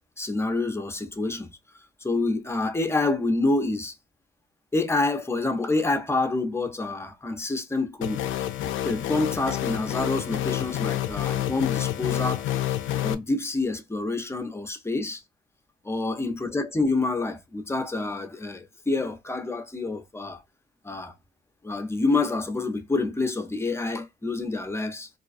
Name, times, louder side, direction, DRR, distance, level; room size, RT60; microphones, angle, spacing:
voice 1, 0.2-1.5 2.0-3.9 4.7-8.2 8.8-12.4 13.0-15.2 15.8-20.4 20.8-21.1 21.6-25.1, left 3 dB, 15° left, 0.5 m, -27 dB
sound 1, 8.0-13.1, left 12 dB, 80° left, 0.4 m, -28 dB
2.3 x 2.2 x 2.4 m
cardioid pair, 90°, 20 cm